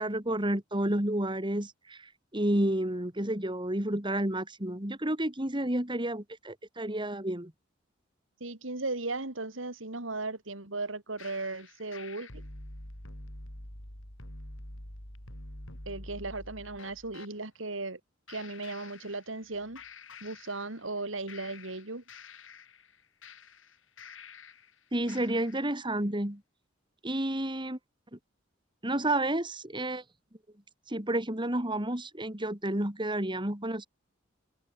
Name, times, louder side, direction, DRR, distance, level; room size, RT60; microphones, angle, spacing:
voice 1, 0.0-2.0 2.3-7.5 24.9-26.4 27.0-27.8 28.8-30.0 30.9-33.9, right 1 dB, 25° right, 3.6 m, -30 dB
voice 2, 8.4-12.4 15.8-18.0 18.3-19.8 20.2-22.0, right 3 dB, 80° right, 3.2 m, -36 dB
sound 1, 11.2-17.3 18.3-19.5 19.8-21.0 21.3-24.7 25.1-25.7, left 2 dB, 85° left, 6.4 m, -47 dB
head